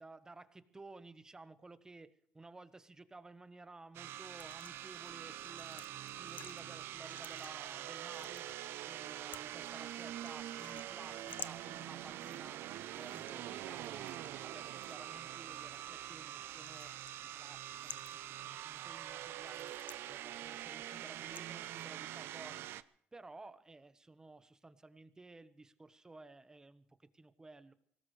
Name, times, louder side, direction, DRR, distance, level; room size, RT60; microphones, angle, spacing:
voice 1, 0.0-5.8 6.1-8.6 8.9-12.6 12.9-27.7, right 3 dB, 15° right, 13 dB, 1.1 m, -55 dB
sound 1, 3.9-22.8, right 12 dB, 80° right, 0.7 m, -45 dB
sound 2, 4.3-21.8, left 7 dB, 45° left, 0.9 m, -56 dB
24.0 x 18.0 x 3.3 m, 0.68 s
cardioid pair, 115°, 4 cm